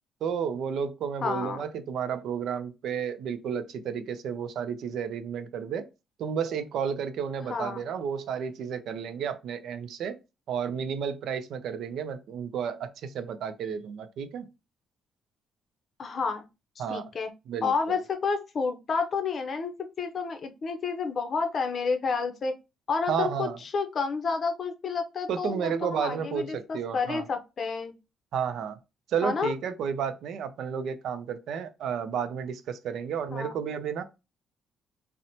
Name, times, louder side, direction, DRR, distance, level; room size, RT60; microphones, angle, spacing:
voice 1, 0.2-5.9 6.2-10.2 10.5-14.5 16.8-17.0 17.5-18.0 23.1-23.6 25.3-27.3 28.3-28.8 29.1-34.0, right 7 dB, 75° right, 0.4 m, -32 dB
voice 2, 1.2-1.6 7.5-7.8 16.0-16.5 16.9-17.3 17.6-19.7 20.0-22.5 22.9-27.9 29.2-29.5 33.3-33.5, left 5 dB, 50° left, 0.5 m, -30 dB
2.8 x 2.0 x 2.6 m
cardioid pair, 90°, 0 cm